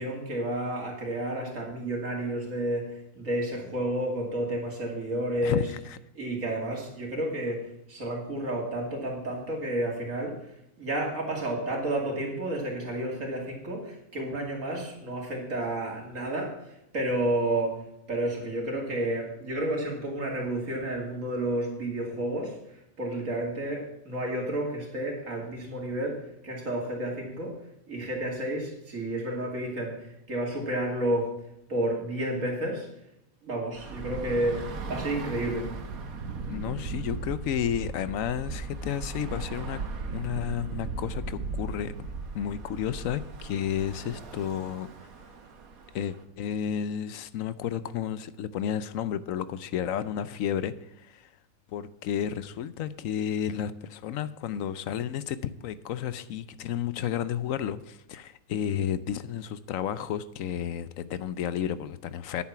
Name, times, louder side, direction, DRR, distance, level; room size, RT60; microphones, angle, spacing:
voice 1, 0.0-5.6 6.1-10.3 10.8-27.6 27.9-31.3 31.7-32.9 33.4-35.7, right 1 dB, 70° right, -1 dB, 3.1 m, -31 dB
voice 2, 5.4-6.0 36.5-39.8 40.1-41.9 42.3-44.9 45.9-51.3 51.7-62.4, left 9 dB, 75° left, 15 dB, 1.0 m, -32 dB
Bus / Traffic noise roadway noise, 33.8-46.2, right 4 dB, 90° right, 1.7 m, -37 dB
9.9 x 8.5 x 5.8 m, 0.81 s
omnidirectional pair, 1.4 m